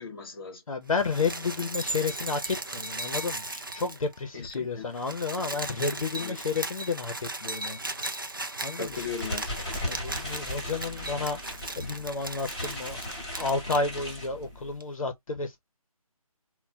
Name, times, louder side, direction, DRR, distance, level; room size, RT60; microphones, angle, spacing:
voice 1, 0.0-0.6 4.3-4.9 6.2-6.4 8.7-9.6, left 5 dB, 40° left, 0.9 m, -37 dB
voice 2, 0.7-7.8 8.6-9.0 9.8-15.6, left 4 dB, 60° left, 0.7 m, -31 dB
sound 1, 0.9-4.2 4.5-4.6 4.8-13.8 14.8-14.9, right 2 dB, 35° right, 0.4 m, -37 dB
sound 2, 8.9-14.8, left 1 dB, 15° left, 1.5 m, -37 dB
4.0 x 2.1 x 2.2 m
figure-of-eight pair, 175°, 19 cm